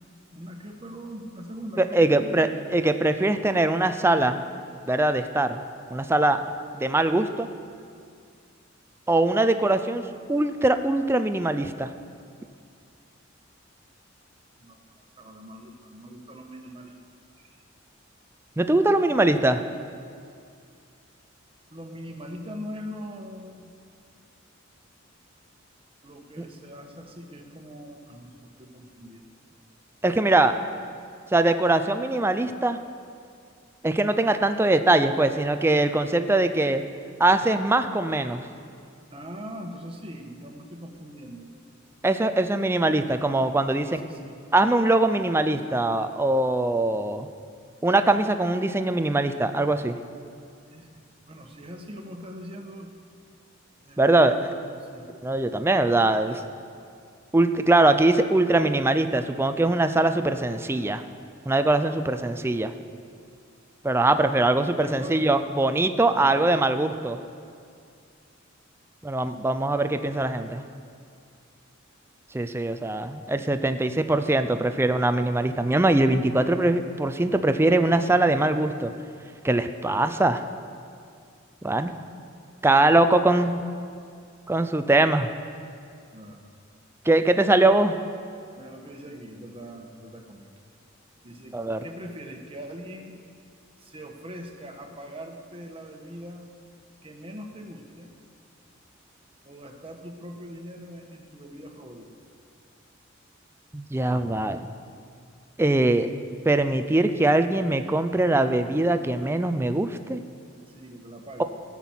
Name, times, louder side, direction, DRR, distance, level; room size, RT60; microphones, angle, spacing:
voice 1, 0.3-2.5 14.6-16.9 17.4-17.6 21.7-23.7 26.0-29.2 39.1-41.5 43.7-44.4 50.7-52.9 53.8-54.0 54.3-54.5 54.8-55.1 56.3-56.4 64.8-65.2 66.1-66.4 86.1-86.4 88.6-90.5 91.2-93.2 93.8-96.5 97.0-98.1 99.4-102.1 110.7-111.4, equal, 30° right, 3 dB, 1.2 m, -41 dB
voice 2, 1.8-4.4 4.9-5.6 5.9-6.4 6.7-7.5 9.1-10.0 10.3-11.9 18.6-19.6 30.0-30.6 31.3-32.8 33.8-36.8 37.2-38.4 42.0-44.0 44.5-47.3 47.8-50.0 54.0-54.5 55.2-56.4 57.3-61.0 61.5-62.7 63.8-67.2 69.0-70.6 72.3-78.9 79.4-80.4 81.6-81.9 82.6-83.6 84.5-85.3 87.1-88.0 91.5-91.8 103.7-104.6 105.6-106.1 106.5-110.2, right 2 dB, 10° right, 9 dB, 0.4 m, -22 dB
16.0 x 6.0 x 7.3 m, 2.3 s
head